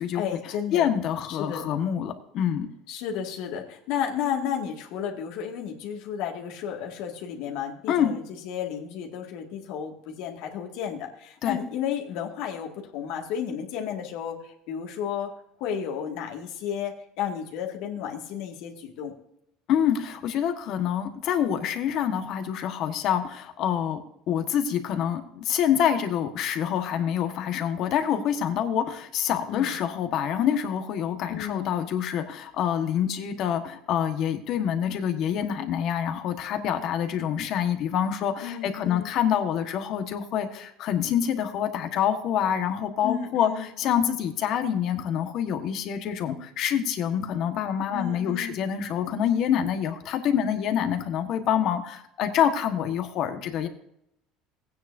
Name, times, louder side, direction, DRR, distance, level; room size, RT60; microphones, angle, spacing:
voice 1, 0.1-0.9 1.3-1.7 2.9-19.2 29.5-29.8 31.3-31.7 38.4-39.1 43.0-43.7 47.9-48.7, left 8 dB, 70° left, 2 dB, 2.1 m, -33 dB
voice 2, 0.7-2.7 7.9-8.1 11.4-11.6 19.7-24.0 24.3-53.7, left 9 dB, 55° left, 7 dB, 1.5 m, -26 dB
16.5 x 9.4 x 2.7 m, 0.77 s
supercardioid pair, 115°, 0 cm